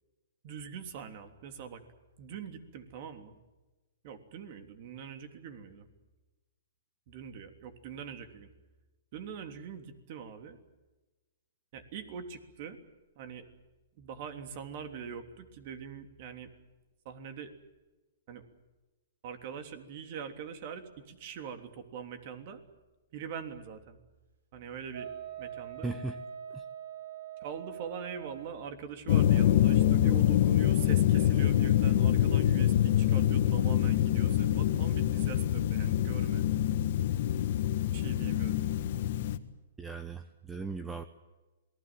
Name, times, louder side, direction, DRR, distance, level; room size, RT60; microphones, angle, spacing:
voice 1, 0.4-1.8 2.2-3.4 4.0-5.9 7.1-8.5 9.1-10.6 11.7-12.8 13.1-13.5 14.0-16.5 17.0-17.5 18.3-18.5 19.2-22.6 23.1-24.0 24.5-25.1 25.4-25.9 27.4-36.4 37.9-38.6, right 7 dB, 45° right, 7 dB, 3.3 m, -43 dB
Wind instrument woodwind instrument, 24.9-28.6, right 9 dB, 80° right, 7.5 m, -43 dB
voice 2, 25.8-26.2 39.8-41.0, right 3 dB, 10° right, 10 dB, 1.0 m, -37 dB
sound 1, 29.1-39.4, left 11 dB, 50° left, 1.6 m, -25 dB
28.0 x 20.0 x 7.9 m, 1.1 s
hypercardioid pair, 155°, 0 cm